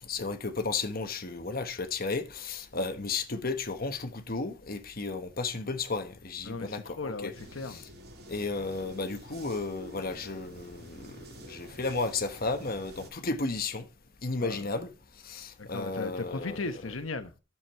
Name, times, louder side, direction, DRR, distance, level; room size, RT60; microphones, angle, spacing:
voice 1, 0.1-7.3 7.7-7.8 8.3-13.9 14.2-14.9 15.2-16.6, left 3 dB, 50° left, 1.3 m, -33 dB
voice 2, 6.4-7.8 14.4-14.7 15.6-17.4, left 3 dB, 90° left, 1.1 m, -37 dB
sound 1, 7.3-13.1, right 1 dB, 55° right, 5.0 m, -49 dB
11.0 x 7.3 x 4.5 m
head